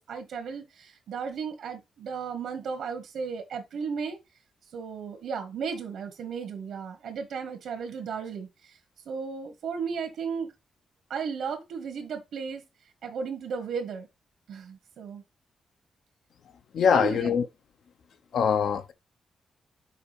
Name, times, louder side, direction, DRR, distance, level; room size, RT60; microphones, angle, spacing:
voice 1, 0.0-4.2 4.7-8.8 9.0-10.5 11.1-12.6 13.0-14.1 14.5-15.2 16.9-17.3, right 6 dB, 85° right, 1.4 m, -35 dB
voice 2, 16.7-17.5 18.3-18.9, left 7 dB, 70° left, 0.8 m, -23 dB
5.9 x 4.7 x 5.0 m
wide cardioid pair, 150°, 0 cm